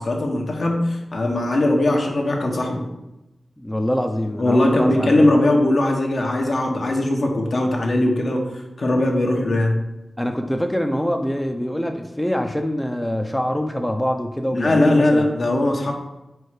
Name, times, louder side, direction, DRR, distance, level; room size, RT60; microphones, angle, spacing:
voice 1, 0.0-2.8 4.4-8.4 8.8-9.8 14.5-15.9, left 1 dB, 65° left, 0 dB, 1.2 m, -19 dB
voice 2, 3.6-5.3 10.2-15.2, equal, 10° left, 3 dB, 0.6 m, -24 dB
4.6 x 4.2 x 4.9 m, 0.95 s
cardioid pair, 55°, 0 cm